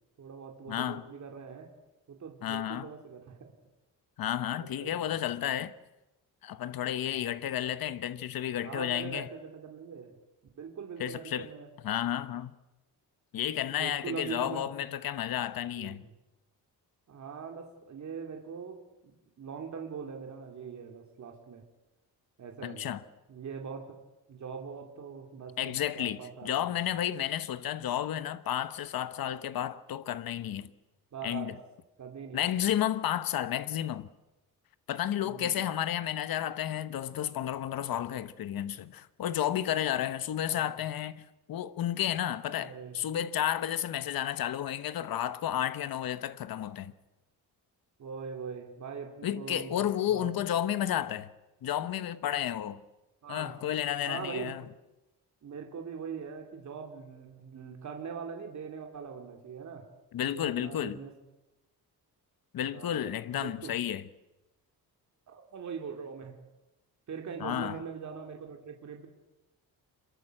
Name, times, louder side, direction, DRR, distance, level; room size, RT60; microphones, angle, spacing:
voice 1, 0.2-1.7 2.1-3.5 4.5-5.1 6.9-7.3 8.6-10.1 10.5-11.7 13.7-14.7 15.7-16.1 17.1-21.6 22.4-23.0 23.3-24.0 24.3-26.8 31.1-31.6 32.0-32.7 35.2-35.6 40.5-40.7 42.6-43.0 48.0-49.8 50.1-50.3 53.2-53.5 54.1-54.6 55.4-59.9 60.2-61.1 62.7-63.7 65.3-66.4 67.1-69.1, right 6 dB, 45° right, 3.0 m, -42 dB
voice 2, 0.7-1.0 2.4-2.9 4.2-5.7 6.4-9.3 11.0-11.5 11.8-12.5 13.3-16.0 22.6-23.0 25.6-26.2 26.4-30.7 31.2-31.5 32.3-34.1 34.9-46.9 49.2-51.3 51.6-52.8 53.3-54.6 60.1-61.0 62.5-64.0 67.4-67.8, left 11 dB, 65° left, 1.1 m, -32 dB
26.5 x 23.0 x 7.8 m
wide cardioid pair, 175°, 38 cm